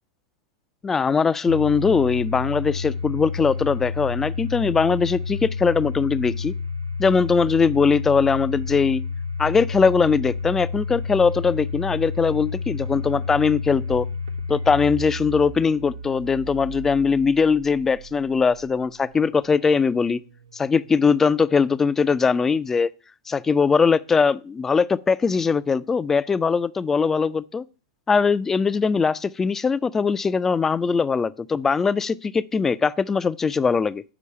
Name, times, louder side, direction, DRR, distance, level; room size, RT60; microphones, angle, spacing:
voice 1, 0.8-6.5 7.0-9.0 9.4-14.1 14.5-20.2 20.5-22.9 23.3-27.6 28.1-34.0, left 5 dB, 15° left, 0.3 m, -21 dB
Domestic sounds home sounds, 1.5-18.4, left 4 dB, 80° right, 0.6 m, -30 dB
6.9 x 4.5 x 5.5 m
figure-of-eight pair, 90°, 2 cm